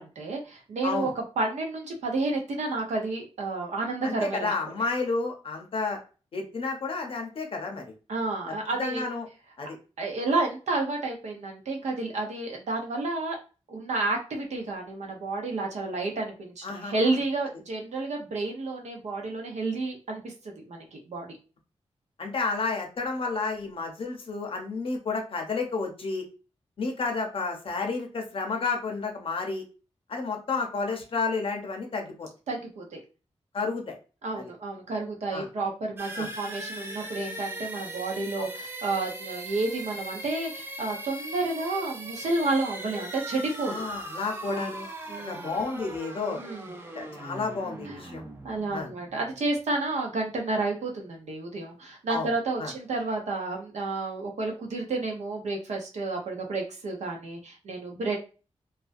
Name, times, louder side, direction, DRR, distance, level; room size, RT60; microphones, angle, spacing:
voice 1, 0.0-4.5 8.1-9.0 10.0-13.4 13.7-21.4 32.5-33.0 34.2-43.9 44.5-44.7 45.1-45.5 46.3-46.7 48.4-58.2, right 3 dB, 85° right, 1 dB, 0.7 m, -31 dB
voice 2, 4.0-6.0 6.3-7.8 8.8-9.3 9.6-9.8 16.6-16.9 22.2-26.2 26.8-29.6 30.1-32.3 33.5-34.0 35.3-35.5 36.1-36.3 38.4-38.5 43.7-44.9 45.3-46.4 46.9-48.2 48.7-48.9 52.1-52.3 52.6-52.7, left 4 dB, 55° left, 2 dB, 0.6 m, -31 dB
sound 1, 36.0-49.7, right 1 dB, 20° right, 0.4 m, -39 dB
2.4 x 2.1 x 2.5 m, 0.34 s
wide cardioid pair, 165°, 11 cm